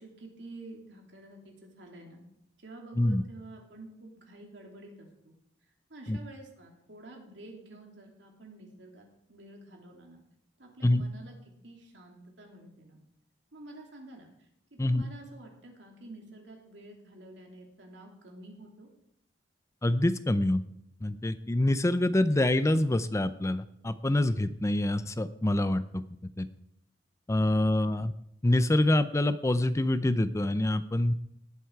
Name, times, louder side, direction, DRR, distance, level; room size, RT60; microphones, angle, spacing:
voice 1, 0.0-2.2 2.6-5.3 5.9-10.2 10.6-11.4 11.6-13.0 13.5-14.3 14.7-18.9 27.5-28.0, right 2 dB, 70° right, 1 dB, 3.2 m, -49 dB
voice 2, 19.8-20.6 21.0-26.0 26.4-26.5 27.3-28.1 28.4-31.1, left 1 dB, 15° left, 13 dB, 0.5 m, -26 dB
18.5 x 7.8 x 4.7 m, 0.77 s
head